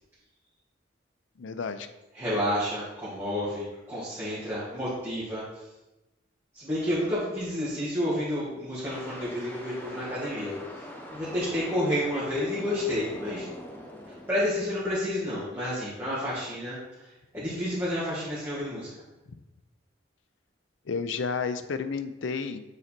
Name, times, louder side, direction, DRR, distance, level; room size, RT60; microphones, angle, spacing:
voice 1, 1.4-1.9 20.9-22.6, left 5 dB, 75° left, 10 dB, 0.5 m, -31 dB
voice 2, 2.1-5.4 6.5-10.8 11.1-13.5 14.3-17.1 17.3-18.9, left 1 dB, 15° right, -11 dB, 1.8 m, -30 dB
sound 1, 8.8-15.1, equal, 10° left, 0.7 m, -43 dB
7.0 x 4.0 x 4.3 m, 1.0 s
head